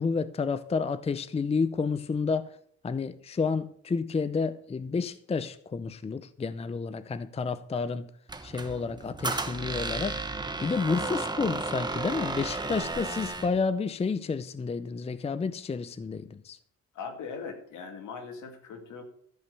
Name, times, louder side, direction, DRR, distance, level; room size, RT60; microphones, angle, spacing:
voice 1, 0.0-2.6 2.8-8.1 8.4-10.2 10.6-16.6, left 4 dB, 20° left, 0.5 m, -30 dB
Squeak, 8.3-13.6, right 3 dB, 15° right, 1.2 m, -33 dB
voice 2, 16.9-19.0, left 5 dB, 75° left, 2.3 m, -40 dB
14.0 x 5.3 x 6.9 m
cardioid pair, 90°, 30 cm